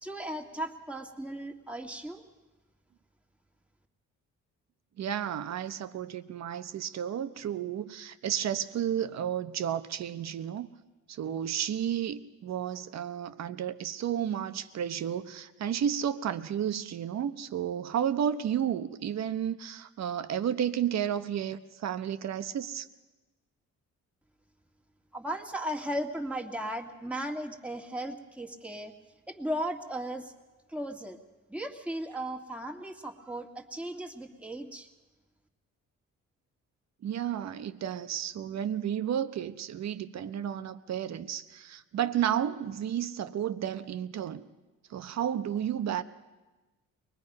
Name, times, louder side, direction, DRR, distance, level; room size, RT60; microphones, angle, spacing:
voice 1, 0.0-2.2 25.1-28.9 29.3-30.3 30.7-31.2 31.5-34.9, right 1 dB, 5° right, 2 dB, 2.0 m, -36 dB
voice 2, 5.0-10.7 11.1-22.8 37.0-44.4 44.9-46.0, right 9 dB, 60° right, 11 dB, 1.0 m, -32 dB
23.5 x 20.5 x 5.4 m, 1.2 s
cardioid pair, 90°, 30 cm